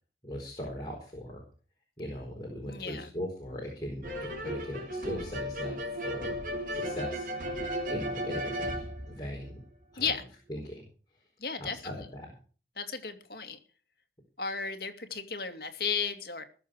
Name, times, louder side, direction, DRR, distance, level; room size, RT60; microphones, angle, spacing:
voice 1, 0.2-1.4 2.0-6.3 6.7-7.3 7.9-9.6 9.9-10.1 10.5-10.8 11.6-12.3, equal, 25° left, -1 dB, 4.5 m, -39 dB
voice 2, 2.6-3.1 10.0-10.2 11.4-12.0 12.8-13.6 14.4-16.4, left 6 dB, 55° left, 7 dB, 2.5 m, -34 dB
sound 1, 4.0-9.8, equal, 50° right, 4.3 m, -35 dB
20.5 x 7.2 x 6.5 m, 0.39 s
head